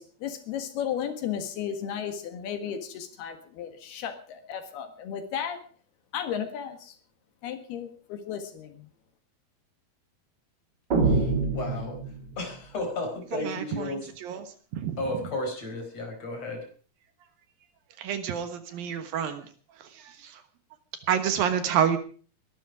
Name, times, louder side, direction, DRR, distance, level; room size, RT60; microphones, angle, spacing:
voice 1, 0.0-5.6 6.1-6.9 7.4-8.9, left 8 dB, 75° left, 8 dB, 3.6 m, -34 dB
sound 1, 10.9-12.5, right 4 dB, 30° right, 2.6 m, -25 dB
voice 2, 11.0-12.0 12.3-14.1 15.0-16.6, left 2 dB, 40° left, 3 dB, 5.7 m, -33 dB
voice 3, 18.0-19.4 21.1-22.0, right 8 dB, 70° right, 10 dB, 2.9 m, -27 dB
21.0 x 12.5 x 4.9 m, 0.42 s
omnidirectional pair, 4.6 m